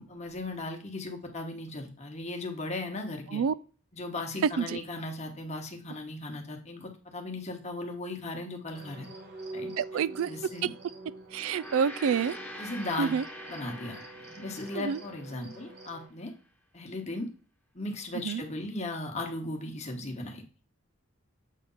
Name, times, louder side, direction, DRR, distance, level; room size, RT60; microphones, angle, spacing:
voice 1, 0.0-3.4 3.9-9.1 9.5-9.7 10.3-10.7 12.6-13.1 13.5-16.3 16.7-17.3 17.7-20.4, left 2 dB, 30° left, 1.2 m, -37 dB
voice 2, 4.4-4.8 9.8-10.3 10.6-10.7 11.3-12.7 13.0-13.2 14.7-15.0 18.2-18.4, right 7 dB, 65° right, 0.3 m, -28 dB
sound 1, 8.7-16.1, right 2 dB, 45° right, 1.5 m, -46 dB
Gong, 11.3-15.9, left 1 dB, 10° left, 1.1 m, -45 dB
7.5 x 3.3 x 5.5 m
head